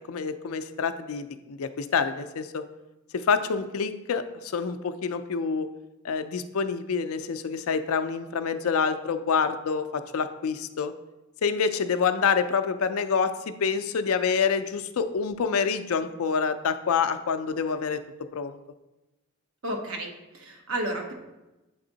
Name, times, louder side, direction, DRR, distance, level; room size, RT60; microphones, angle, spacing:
voice 1, 0.1-2.6 3.1-5.7 6.0-10.9 11.4-18.0 18.3-18.6, left 5 dB, 80° left, 10 dB, 0.4 m, -27 dB
voice 2, 19.6-21.1, right 1 dB, 70° right, 2 dB, 1.0 m, -32 dB
8.4 x 3.5 x 3.9 m, 1.0 s
head